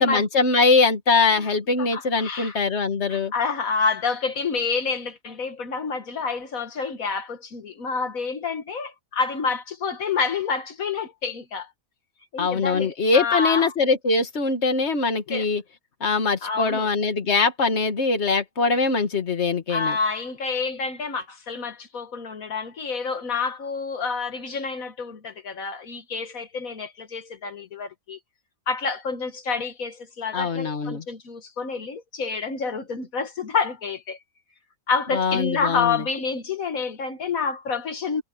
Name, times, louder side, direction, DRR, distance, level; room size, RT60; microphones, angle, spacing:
voice 1, 0.0-3.3 12.4-15.6 16.0-20.0 30.3-31.0 35.1-36.0, left 4 dB, 50° left, 2.1 m, -22 dB
voice 2, 1.8-2.6 3.1-11.7 12.3-13.7 15.3-15.5 16.4-16.9 19.7-28.2 28.7-34.2 34.9-38.2, left 5 dB, 75° left, 1.8 m, -28 dB
omnidirectional pair, 1.5 m